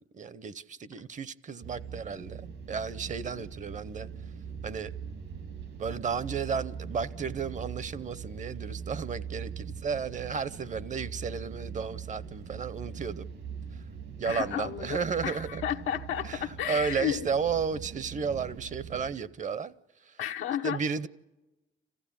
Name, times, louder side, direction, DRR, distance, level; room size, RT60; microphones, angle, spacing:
voice 1, 0.1-4.1 4.6-4.9 5.8-13.3 14.2-15.6 16.2-19.7 20.0-20.2 20.6-21.1, right 6 dB, 40° right, 0.7 m, -33 dB
sound 1, 1.6-19.2, right 6 dB, 75° right, 2.1 m, -41 dB
voice 2, 14.3-17.2 20.2-20.8, left 10 dB, 90° left, 0.9 m, -32 dB
27.0 x 15.5 x 8.5 m
cardioid pair, 90°, 20 cm